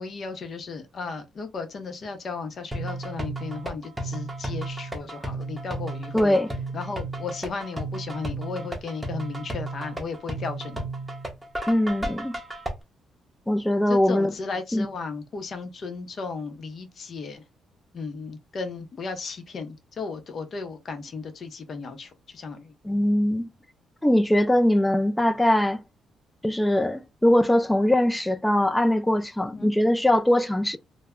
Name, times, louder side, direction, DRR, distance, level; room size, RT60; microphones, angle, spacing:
voice 1, 0.0-6.4 6.7-10.9 13.9-17.4 17.9-22.7 29.5-29.7, left 4 dB, 50° left, 0.6 m, -35 dB
sound 1, 2.7-12.7, right 2 dB, 10° right, 0.8 m, -33 dB
voice 2, 6.1-6.5 11.7-12.4 13.5-14.3 14.7-14.9 22.8-23.5 24.0-25.8 26.4-30.8, left 1 dB, 10° left, 0.3 m, -21 dB
2.1 x 2.0 x 3.5 m
cardioid pair, 105°, 0 cm